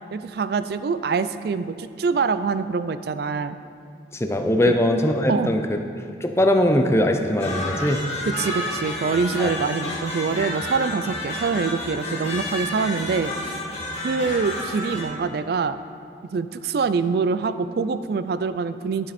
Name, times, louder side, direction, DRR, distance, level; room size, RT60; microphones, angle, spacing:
voice 1, 0.1-3.6 4.6-4.8 5.3-5.5 8.3-13.6 14.0-15.8 16.3-19.1, right 5 dB, 55° right, 12 dB, 0.3 m, -25 dB
voice 2, 4.1-5.8 6.2-8.0 9.4-9.5, left 1 dB, 15° left, 5 dB, 0.5 m, -21 dB
sound 1, 7.4-15.0, left 1 dB, 35° left, 2.0 m, -30 dB
11.5 x 7.5 x 4.2 m, 2.5 s
head